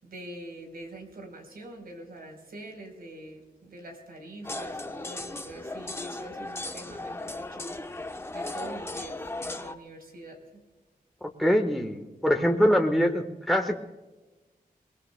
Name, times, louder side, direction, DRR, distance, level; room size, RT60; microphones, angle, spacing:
voice 1, 0.0-10.6, right 1 dB, 85° right, 3 dB, 3.9 m, -45 dB
sound 1, 4.4-9.8, left 2 dB, 15° left, 0.9 m, -36 dB
voice 2, 11.2-13.8, equal, ahead, 3 dB, 1.2 m, -24 dB
23.0 x 20.5 x 2.2 m, 1.2 s
wide cardioid pair, 90°, 15 cm